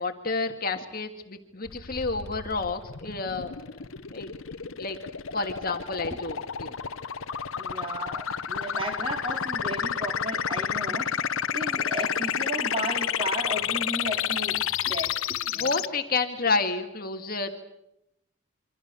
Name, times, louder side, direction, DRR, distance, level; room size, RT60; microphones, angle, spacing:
voice 1, 0.0-3.6 4.1-4.3 4.8-5.0 5.3-6.8 15.6-17.5, left 3 dB, 45° left, 5 dB, 2.0 m, -30 dB
sound 1, 1.7-15.9, left 8 dB, 85° left, 1.0 m, -30 dB
voice 2, 7.5-11.1 11.5-15.7, right 1 dB, 25° right, 3 dB, 4.0 m, -34 dB
27.5 x 25.5 x 6.9 m, 0.82 s
head